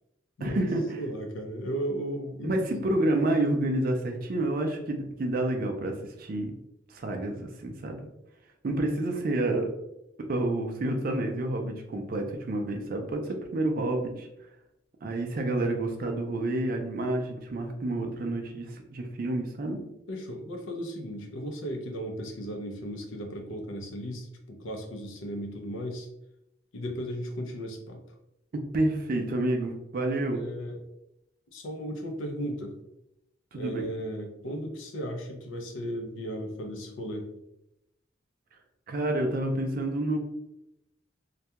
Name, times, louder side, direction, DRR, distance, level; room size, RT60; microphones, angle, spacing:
voice 1, 0.4-1.0 2.4-6.5 6.9-8.1 8.6-9.7 10.3-14.3 15.0-19.8 28.5-30.4 33.5-33.9 38.9-40.2, right 1 dB, 45° right, 3 dB, 0.4 m, -29 dB
voice 2, 1.0-2.8 20.1-26.1 26.7-28.0 30.3-30.8 31.5-32.8 33.5-37.3, equal, 85° left, 3 dB, 0.5 m, -35 dB
2.3 x 2.2 x 2.8 m, 0.86 s
head